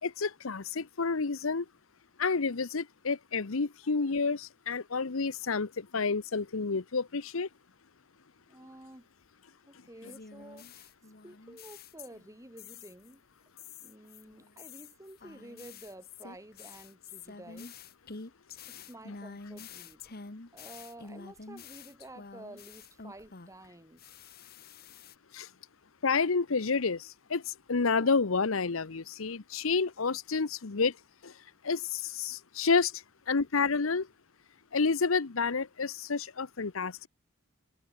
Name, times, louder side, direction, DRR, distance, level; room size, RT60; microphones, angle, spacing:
voice 1, 0.0-1.7 2.2-7.5 25.3-25.5 26.0-30.9 31.2-31.3 31.6-34.1 34.7-37.1, left 4 dB, 75° left, 0.9 m, -29 dB
voice 2, 8.5-9.1 9.7-10.9 11.2-13.2 13.8-17.8 18.7-20.0 20.5-24.0, right 1 dB, 15° right, 5.7 m, -51 dB
sound 1, 10.0-12.3 12.6-13.1 13.6-23.7 24.0-25.1, left 4 dB, 50° left, 1.6 m, -48 dB
open air
head